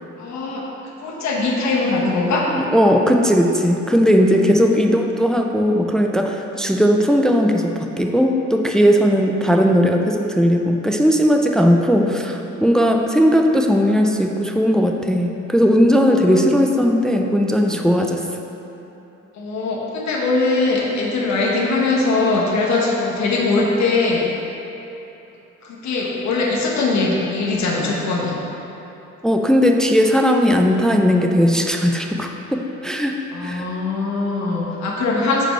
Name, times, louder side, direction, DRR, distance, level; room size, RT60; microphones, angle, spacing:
voice 1, 0.2-0.6 1.0-2.4 4.2-4.8 16.1-16.4 17.6-17.8 19.3-24.3 25.6-28.4 33.3-35.5, left 3 dB, 65° left, -2 dB, 1.1 m, -21 dB
voice 2, 2.5-18.4 29.2-33.7, equal, ahead, 3 dB, 0.4 m, -17 dB
5.1 x 4.4 x 5.6 m, 3.0 s
cardioid pair, 90°, 30 cm